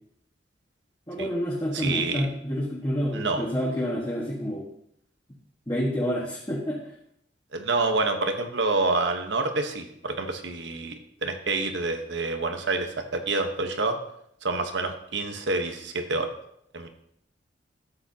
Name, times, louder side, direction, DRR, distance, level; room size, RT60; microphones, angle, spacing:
voice 1, 1.1-4.7 5.7-6.9, equal, 20° left, -5 dB, 1.5 m, -28 dB
voice 2, 1.7-2.3 3.1-3.4 7.5-14.0 14.4-16.3 16.7-16.9, right 3 dB, 80° right, 6 dB, 1.2 m, -27 dB
13.0 x 8.6 x 2.9 m, 0.72 s
head